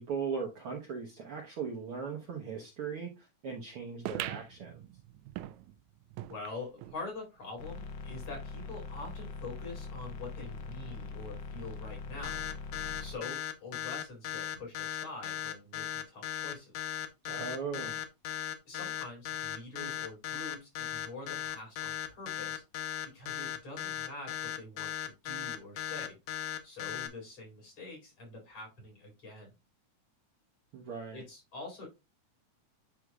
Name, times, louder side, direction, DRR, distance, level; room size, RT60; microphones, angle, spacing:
voice 1, 0.0-4.9 17.3-18.0 30.7-31.2, right 5 dB, 60° right, 1 dB, 1.5 m, -38 dB
sound 1, 4.0-7.0 7.4-7.5 7.7-7.8 8.6-8.7, right 14 dB, 80° right, 1.9 m, -42 dB
voice 2, 6.3-12.4 13.0-16.9 18.7-22.6 23.1-26.2 26.6-29.5 31.1-31.9, left 3 dB, 50° left, -1 dB, 5.3 m, -45 dB
sound 2, 7.6-13.1, left 4 dB, 85° left, 1.0 m, -42 dB
sound 3, 12.2-27.1, left 11 dB, 65° left, 1.7 m, -37 dB
9.7 x 6.0 x 2.3 m, 0.25 s
omnidirectional pair, 3.6 m